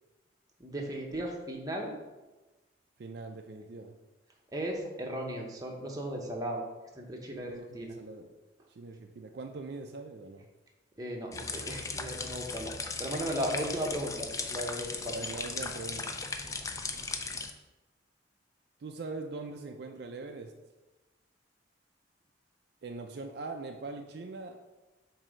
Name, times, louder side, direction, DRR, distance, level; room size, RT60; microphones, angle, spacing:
voice 1, 0.6-1.9 4.5-6.6 6.9-8.0 11.0-12.7 13.0-15.1, equal, 20° right, 0 dB, 0.8 m, -36 dB
voice 2, 3.0-3.9 7.5-8.4 8.7-10.5 15.1-16.2 18.8-20.5 22.8-24.8, right 3 dB, 55° right, 4 dB, 0.4 m, -42 dB
sound 1, 11.3-17.5, left 4 dB, 15° left, 0.3 m, -37 dB
7.4 x 2.7 x 5.0 m, 1.1 s
head